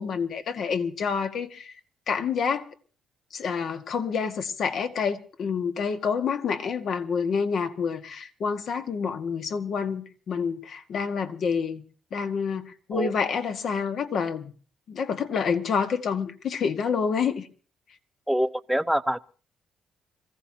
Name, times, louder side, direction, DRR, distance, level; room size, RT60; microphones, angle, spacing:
voice 1, 0.0-1.7 2.1-2.6 3.3-11.8 12.1-14.5 14.9-17.5, left 6 dB, 65° left, 1.5 m, -28 dB
voice 2, 18.3-19.2, equal, 5° right, 0.7 m, -25 dB
26.5 x 15.5 x 2.8 m
cardioid pair, 90°, 0 cm